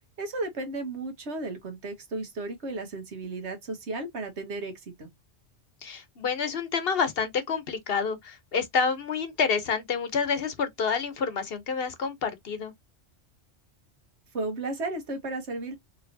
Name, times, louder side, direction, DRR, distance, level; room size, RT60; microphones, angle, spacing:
voice 1, 0.2-5.1 14.3-15.8, right 2 dB, 75° right, 1.4 m, -34 dB
voice 2, 5.8-12.7, left 5 dB, 60° left, 1.0 m, -28 dB
4.5 x 3.0 x 2.6 m
omnidirectional pair, 1.2 m